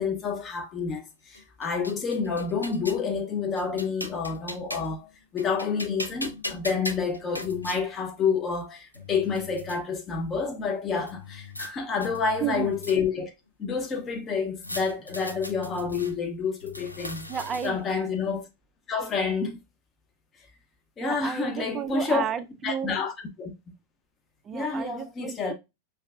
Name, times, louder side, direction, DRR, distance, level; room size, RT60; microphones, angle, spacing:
voice 1, 0.0-13.3 13.6-17.3 17.6-18.4 18.9-19.6 21.0-22.3 22.6-23.1 23.4-23.5 24.5-25.5, left 5 dB, 25° left, 0.7 m, -29 dB
sound 1, 1.3-3.1 3.6-5.0 5.4-7.8 8.6-8.7 8.9-9.8 11.1-11.7 12.0-13.3 14.6-16.1 16.6-17.9, left 2 dB, 85° left, 0.5 m, -39 dB
voice 2, 12.4-12.7 17.0-17.8 21.0-22.9 24.4-25.5, right 8 dB, 25° right, 0.4 m, -32 dB
5.4 x 2.3 x 2.3 m
figure-of-eight pair, 90°, 0 cm